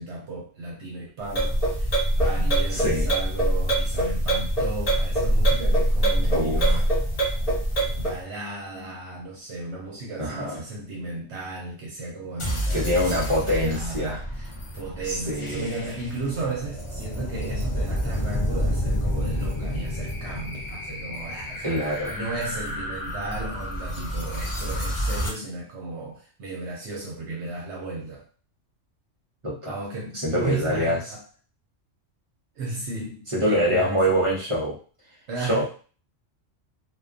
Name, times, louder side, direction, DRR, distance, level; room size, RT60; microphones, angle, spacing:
voice 1, 0.0-6.9 7.8-28.3 29.7-31.2 32.6-34.1 35.3-35.6, right 3 dB, 70° right, -2 dB, 0.8 m, -35 dB
sound 1, 1.3-8.2, right 1 dB, 35° left, 0.7 m, -23 dB
voice 2, 2.7-3.1 6.3-6.8 10.2-10.6 12.7-14.2 15.0-15.7 21.6-22.2 29.4-29.7 30.2-31.0 33.3-34.8 35.5-35.6, equal, 40° right, -5 dB, 0.5 m, -25 dB
sound 2, 12.4-25.3, equal, 55° left, 0.3 m, -30 dB
2.4 x 2.2 x 2.4 m, 0.39 s
omnidirectional pair, 1.3 m